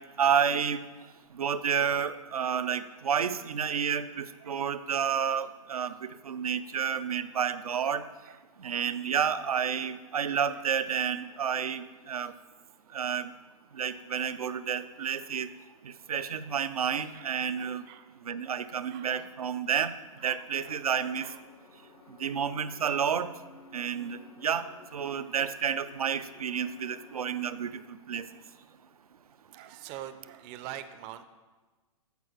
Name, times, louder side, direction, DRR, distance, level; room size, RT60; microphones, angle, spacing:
voice 1, 0.2-0.8 1.4-5.9 6.3-8.0 8.6-12.3 12.9-13.3 13.8-15.5 16.1-17.8 18.3-19.9 20.2-21.3 22.2-23.3 23.7-24.6 24.9-27.7 28.1-28.2, right 7 dB, 85° right, 12 dB, 0.5 m, -30 dB
voice 2, 16.1-16.5 17.1-18.2 18.5-19.3 20.2-21.4 29.5-31.2, right 12 dB, 30° right, 11 dB, 0.5 m, -47 dB
sound 1, 20.5-27.6, left 5 dB, 65° left, 0.7 m, -55 dB
8.2 x 4.6 x 6.2 m, 1.3 s
hypercardioid pair, 125°, 18 cm